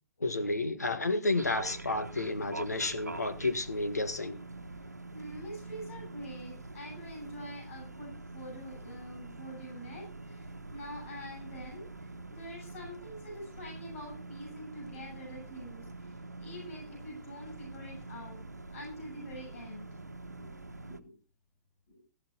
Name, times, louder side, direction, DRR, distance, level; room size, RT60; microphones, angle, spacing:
voice 1, 0.2-4.4, left 2 dB, 80° left, 9 dB, 1.7 m, -31 dB
sound 1, 1.4-21.0, right 2 dB, 85° right, 1.1 m, -45 dB
voice 2, 4.8-18.4 18.7-19.9 20.4-20.5 21.0-21.2 21.9-22.0, equal, 55° left, 1 dB, 7.7 m, -45 dB
14.0 x 12.0 x 4.1 m, 0.33 s
figure-of-eight pair, 105°, 9 cm